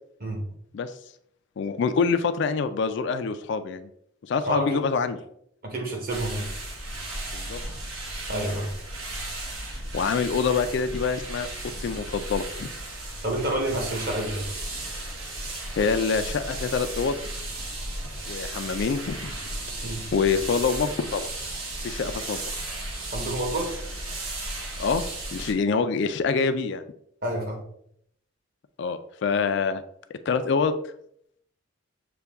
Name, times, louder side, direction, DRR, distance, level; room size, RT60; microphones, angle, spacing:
voice 1, 1.6-3.9 4.2-5.2 7.3-7.6 9.9-11.5 11.8-12.7 15.7-17.2 18.3-19.3 20.1-21.3 21.8-22.4 24.8-26.8 28.8-29.8 30.3-30.7, left 5 dB, 55° left, 9 dB, 0.3 m, -25 dB
voice 2, 4.5-4.8 5.6-6.5 8.3-8.7 13.2-14.5 19.8-20.1 23.1-23.7 27.2-27.6, right 1 dB, 45° right, 1 dB, 1.1 m, -29 dB
sound 1, 6.1-25.5, right 2 dB, 80° right, 1.1 m, -35 dB
6.7 x 2.3 x 3.4 m, 0.69 s
head